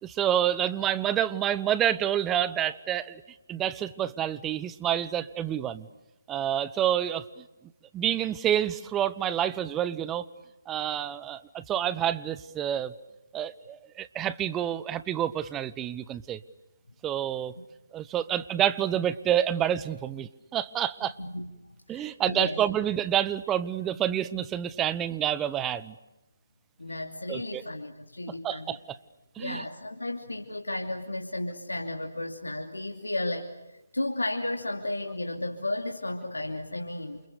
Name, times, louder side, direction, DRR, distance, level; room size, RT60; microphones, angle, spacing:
voice 1, 0.0-3.2 3.5-5.9 6.3-7.2 7.9-10.2 10.7-12.9 13.3-16.4 17.0-17.5 17.9-21.1 21.9-25.9 27.3-27.6 28.4-29.0 29.4-29.6, right 10 dB, 15° right, 15 dB, 1.1 m, -28 dB
voice 2, 21.0-21.6 21.9-22.6 26.8-28.8 29.4-37.2, left 1 dB, 90° left, 3 dB, 2.9 m, -34 dB
29.5 x 28.5 x 6.9 m, 0.98 s
figure-of-eight pair, 145°, 0 cm